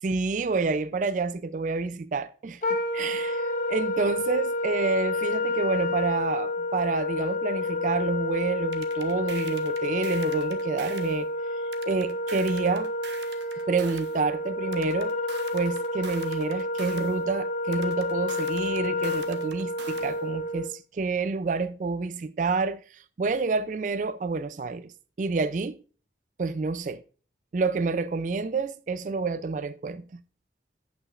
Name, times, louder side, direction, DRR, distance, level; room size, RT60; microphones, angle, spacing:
voice 1, 0.0-11.3 11.8-12.9 13.7-15.1 15.5-24.9 25.2-25.8 26.4-27.0 27.5-30.2, right 4 dB, 45° right, 0.3 m, -28 dB
Wind instrument woodwind instrument, 2.6-20.7, left 2 dB, 45° left, 0.8 m, -29 dB
sound 1, 8.7-11.2 11.7-14.2 14.7-17.2 17.7-20.2, right 7 dB, 80° right, 0.9 m, -44 dB
16.0 x 5.9 x 2.4 m
head